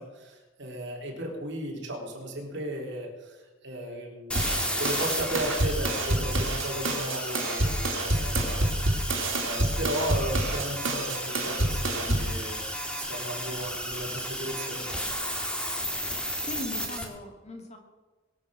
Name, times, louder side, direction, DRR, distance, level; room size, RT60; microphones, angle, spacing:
voice 1, 0.0-15.1, right 1 dB, 65° right, 0 dB, 3.7 m, -36 dB
sound 1, 4.3-17.0, equal, 5° left, 2.1 m, -33 dB
sound 2, 4.4-12.4, right 1 dB, 90° right, 2.9 m, -28 dB
voice 2, 12.1-12.4 16.5-17.8, left 1 dB, 35° left, 3 dB, 2.5 m, -39 dB
22.5 x 7.6 x 6.5 m, 1.3 s
head